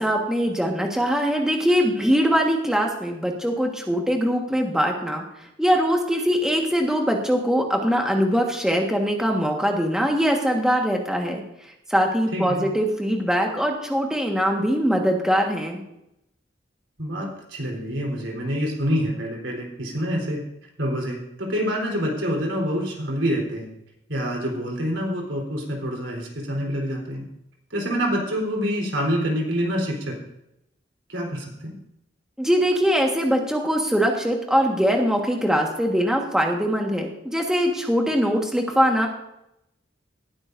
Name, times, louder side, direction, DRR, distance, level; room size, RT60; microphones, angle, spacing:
voice 1, 0.0-5.2 5.6-11.4 11.9-15.8 32.4-39.1, equal, 5° right, 1 dB, 1.5 m, -22 dB
voice 2, 12.3-12.7 17.0-20.4 20.8-23.7 24.1-27.2 27.7-30.2 31.1-31.7, equal, 80° right, 0 dB, 4.0 m, -26 dB
18.5 x 12.0 x 2.7 m, 0.84 s
head